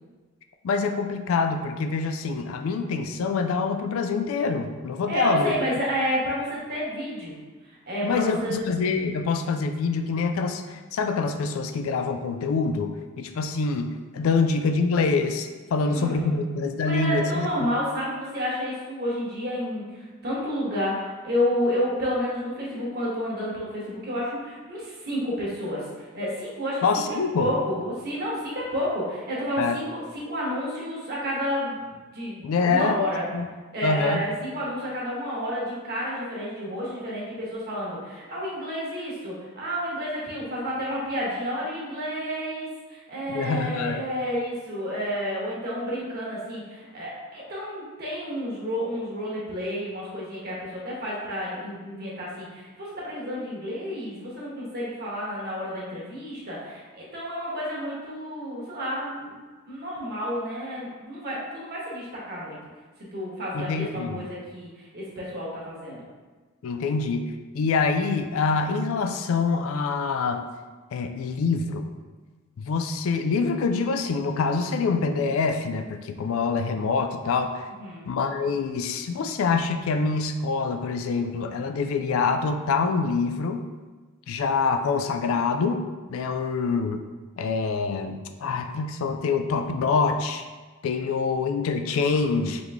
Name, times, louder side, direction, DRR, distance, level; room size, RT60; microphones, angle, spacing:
voice 1, 0.6-5.5 8.0-17.7 26.8-27.5 29.6-29.8 32.4-33.0 33.3-33.5 33.8-34.2 43.3-44.0 63.5-64.2 66.6-67.3 67.5-70.4 70.9-71.9 72.6-77.7 78.1-83.6 84.3-85.8 86.1-87.0 87.4-90.4 90.8-92.6, left 4 dB, 65° left, 7 dB, 0.3 m, -25 dB
voice 2, 5.1-7.4 7.7-8.7 15.8-16.4 16.8-33.2 33.7-59.4 59.7-62.6 63.1-66.1 77.8-78.1, equal, 50° right, -5 dB, 1.3 m, -30 dB
3.9 x 3.1 x 3.4 m, 1.3 s
head